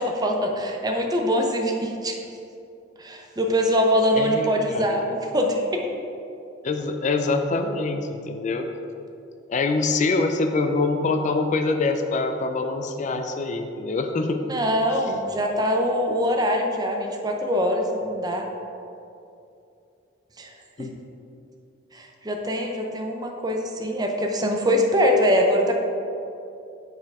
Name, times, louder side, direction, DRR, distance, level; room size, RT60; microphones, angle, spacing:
voice 1, 0.0-2.2 3.0-5.8 14.4-18.5 20.4-20.5 20.8-20.9 21.9-25.7, equal, 20° right, 2 dB, 0.6 m, -23 dB
voice 2, 4.1-5.1 6.6-8.7 9.5-14.4 20.8-21.0, left 3 dB, 40° left, 6 dB, 0.4 m, -25 dB
6.3 x 4.3 x 4.7 m, 2.7 s
head